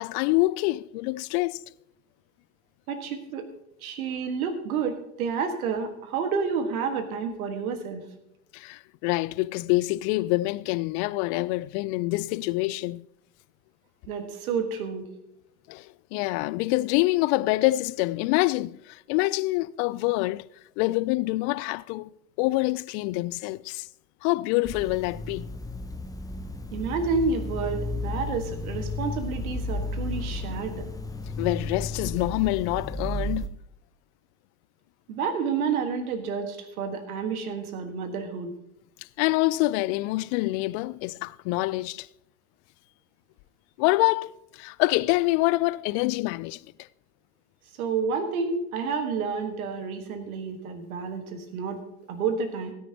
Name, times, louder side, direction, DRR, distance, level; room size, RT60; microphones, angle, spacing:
voice 1, 0.0-1.6 8.5-13.0 15.7-20.5 20.8-22.1 22.4-23.9 24.2-25.4 31.4-33.5 39.2-42.1 43.8-46.6, left 20 dB, 50° left, 0.4 m, -26 dB
voice 2, 2.9-3.5 3.8-8.1 14.0-15.1 26.7-30.9 35.1-38.5 47.8-52.7, right 5 dB, 70° right, 1.7 m, -30 dB
sound 1, 24.6-33.5, left 2 dB, 10° left, 0.9 m, -33 dB
17.0 x 9.9 x 2.9 m
figure-of-eight pair, 65°, 44 cm